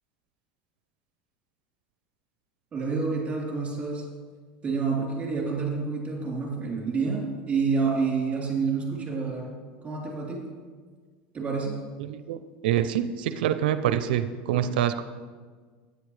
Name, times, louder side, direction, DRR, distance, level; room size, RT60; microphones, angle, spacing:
voice 1, 2.7-4.0 4.6-9.6 9.8-10.4 11.3-11.7 14.5-14.7, right 4 dB, 25° right, -2 dB, 3.4 m, -28 dB
voice 2, 12.0-12.4 12.6-15.0, right 10 dB, 85° right, 11 dB, 0.5 m, -26 dB
13.0 x 9.4 x 3.2 m, 1.5 s
supercardioid pair, 130°, 5 cm